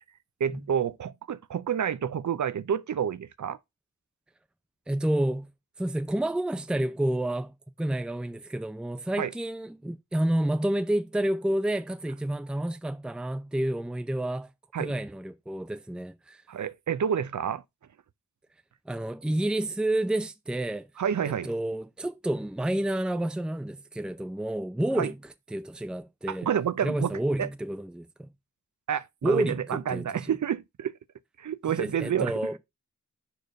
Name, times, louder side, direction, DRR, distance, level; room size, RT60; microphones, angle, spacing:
voice 1, 0.4-3.6 9.2-9.3 14.7-14.9 16.5-17.6 21.0-21.5 25.0-25.1 26.3-27.1 27.4-27.5 28.9-30.9 31.4-32.3, right 8 dB, 60° right, 0.5 m, -29 dB
voice 2, 4.9-5.5 5.8-14.5 14.8-16.4 18.9-20.9 21.2-25.2 25.5-26.5 26.8-28.3 29.2-30.1 31.8-32.6, right 1 dB, 5° right, 0.6 m, -29 dB
4.9 x 4.5 x 5.1 m
cardioid pair, 50°, 33 cm